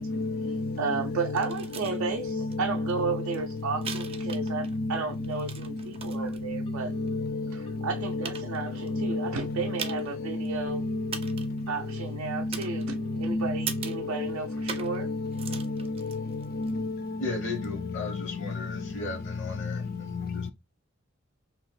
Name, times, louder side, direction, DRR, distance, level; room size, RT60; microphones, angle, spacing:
voice 1, 0.0-1.5 2.0-3.2 3.8-5.0 6.1-7.5 8.0-8.3 8.9-9.3 9.6-10.1 10.3-11.5 12.3-12.5 13.2-16.2 16.5-16.9, left 2 dB, 45° left, 0.3 m, -31 dB
voice 2, 0.8-6.9 7.5-10.8 11.7-15.1, right 4 dB, 90° right, 0.4 m, -33 dB
sound 1, 1.3-2.0 2.5-2.6 2.9-4.8 5.1-6.4 7.1-7.2 7.8-7.9 8.2-8.9 9.8-10.2 10.4-10.5 11.1-11.6 12.5-13.2 13.7-14.1 14.7-15.0 15.3-16.7 17.6-17.7, right 6 dB, 30° right, 0.4 m, -39 dB
Telephone, 6.7-7.2 7.7-8.2 8.7-9.2 9.7-10.2 10.7-11.2 11.7-12.2 12.7-13.2 13.7-14.2, equal, 85° left, 1.5 m, -48 dB
voice 3, 17.2-20.5, left 3 dB, 65° left, 0.8 m, -36 dB
2.9 x 2.1 x 3.1 m
head